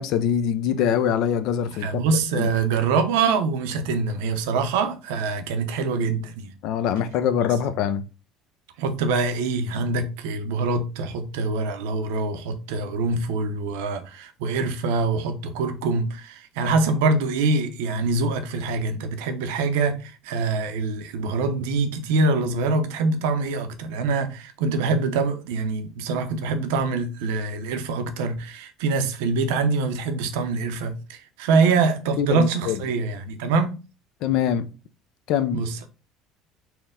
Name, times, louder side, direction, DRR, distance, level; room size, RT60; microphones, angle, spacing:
voice 1, 0.0-1.9 2.3-2.5 6.6-8.0 32.2-32.8 34.2-34.7 35.3-35.6, left 8 dB, 65° left, 0.4 m, -23 dB
voice 2, 1.8-6.5 8.8-33.8 35.5-35.9, right 4 dB, 90° right, 0.6 m, -24 dB
4.3 x 2.2 x 3.6 m
supercardioid pair, 110°, 0 cm